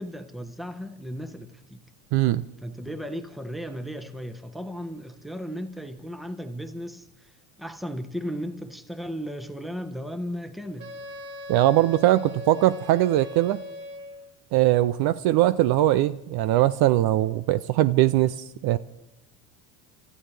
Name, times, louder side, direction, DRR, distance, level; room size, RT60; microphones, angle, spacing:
voice 1, 0.0-1.8 2.6-10.9, equal, ahead, 1.1 m, -35 dB
voice 2, 2.1-2.4 11.5-13.6 14.5-18.8, right 14 dB, 55° right, 0.5 m, -21 dB
Wind instrument woodwind instrument, 10.8-14.4, left 2 dB, 40° right, 2.2 m, -40 dB
29.5 x 13.0 x 3.3 m
supercardioid pair, 85°, 45 cm